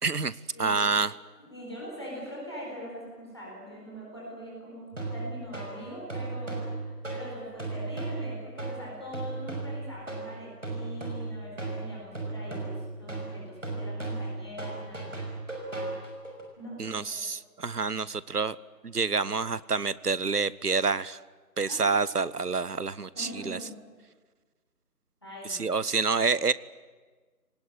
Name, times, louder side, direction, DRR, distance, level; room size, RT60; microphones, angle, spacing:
voice 1, 0.0-1.1 16.8-18.6 18.8-21.2 21.6-23.6 25.5-26.5, right 4 dB, 70° right, 19 dB, 0.9 m, -28 dB
voice 2, 0.5-1.0 1.4-15.2 16.6-17.2 21.7-21.8 23.2-23.8 25.2-25.8, equal, 15° left, -5 dB, 4.2 m, -42 dB
sound 1, 4.9-16.4, right 2 dB, 50° right, 5.9 m, -36 dB
27.0 x 19.0 x 10.0 m, 1.4 s
figure-of-eight pair, 180°, 49 cm